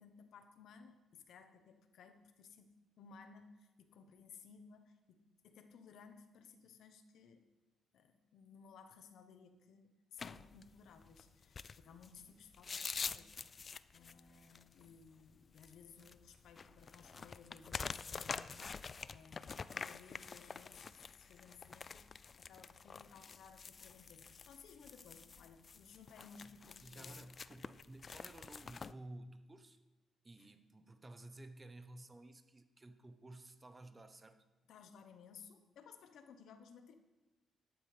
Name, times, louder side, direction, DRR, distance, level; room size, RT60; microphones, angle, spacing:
voice 1, 0.0-7.5 7.9-13.5 13.9-27.3 30.4-30.5 34.7-37.0, left 6 dB, 75° left, 9 dB, 1.0 m, -59 dB
sound 1, 10.2-28.9, left 5 dB, 40° left, 0.3 m, -47 dB
voice 2, 26.8-29.8 30.2-34.4, right 2 dB, 20° right, 9 dB, 0.9 m, -54 dB
12.5 x 11.5 x 3.4 m, 1.1 s
cardioid pair, 90°, 0 cm